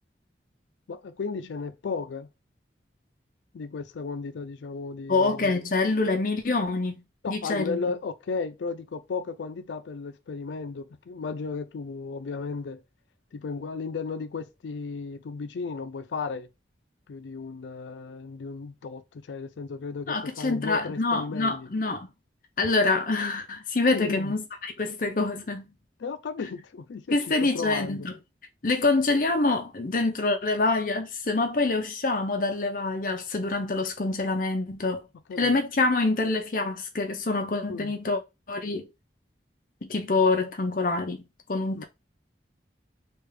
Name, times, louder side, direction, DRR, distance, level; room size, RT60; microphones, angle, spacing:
voice 1, 0.9-2.3 3.5-5.6 7.2-12.8 13.3-16.5 17.1-21.7 23.9-24.3 26.0-27.2 27.5-28.1 35.3-35.6 37.7-37.9 41.8-41.9, left 4 dB, 90° left, 0.4 m, -34 dB
voice 2, 5.1-7.8 20.1-22.1 22.6-25.7 27.1-28.2 28.6-35.0 35.4-38.2 38.5-38.9 39.8-41.2 41.5-41.8, left 3 dB, 50° left, 0.6 m, -26 dB
3.3 x 2.4 x 3.2 m
head